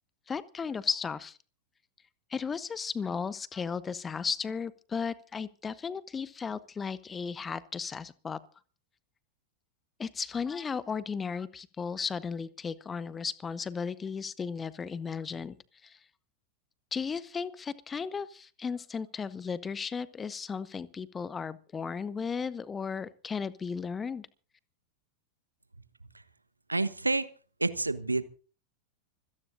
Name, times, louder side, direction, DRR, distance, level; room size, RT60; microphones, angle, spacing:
voice 1, 0.3-1.4 2.3-8.4 10.0-15.6 15.8-16.0 16.9-24.3, left 6 dB, 20° left, 0.9 m, -35 dB
voice 2, 26.7-27.3 27.6-28.3, right 2 dB, 80° right, 1.1 m, -28 dB
26.0 x 17.5 x 2.6 m
figure-of-eight pair, 90°, 0 cm